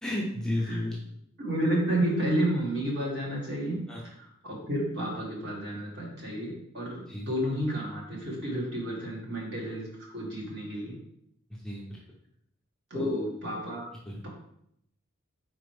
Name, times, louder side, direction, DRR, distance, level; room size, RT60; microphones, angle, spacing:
voice 1, 0.0-1.0 3.9-4.0 7.1-7.3 11.5-12.0 12.9-13.2 14.1-14.2, left 1 dB, 5° left, -4 dB, 0.5 m, -32 dB
voice 2, 1.4-9.9 10.1-11.0 12.9-13.8, right 1 dB, 50° right, -3 dB, 1.5 m, -31 dB
4.2 x 4.0 x 3.1 m, 0.73 s
head